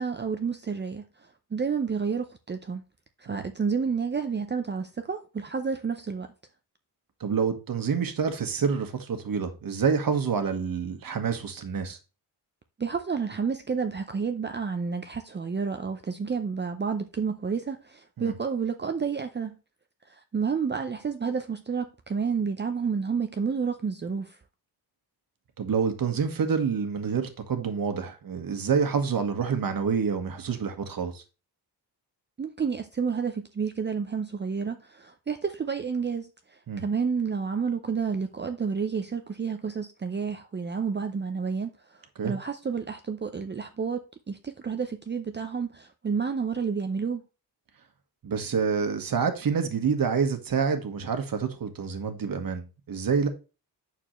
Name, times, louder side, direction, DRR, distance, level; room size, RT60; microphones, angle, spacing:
voice 1, 0.0-2.8 3.2-6.3 12.8-19.6 20.1-24.4 32.4-47.2, right 5 dB, 25° right, 0.7 m, -30 dB
voice 2, 7.2-12.0 18.2-18.3 25.6-31.2 36.7-36.8 42.2-42.3 48.2-53.3, right 6 dB, 55° right, 1.6 m, -27 dB
9.0 x 6.7 x 3.2 m
wide cardioid pair, 150°, 40 cm